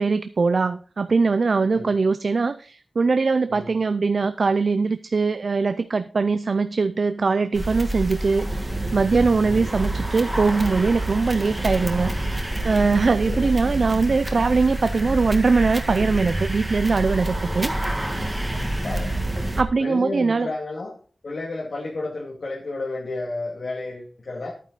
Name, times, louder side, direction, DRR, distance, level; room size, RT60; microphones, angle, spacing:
voice 1, 0.0-12.1 12.6-17.7 19.6-20.5, right 4 dB, 60° right, 12 dB, 0.5 m, -21 dB
sound 1, 7.5-19.6, right 1 dB, 15° right, 1.6 m, -27 dB
voice 2, 13.1-13.5 18.5-19.2 19.8-20.9 21.2-24.5, left 2 dB, 65° left, -2 dB, 2.4 m, -32 dB
11.5 x 9.2 x 4.0 m, 0.41 s
wide cardioid pair, 115°, 0 cm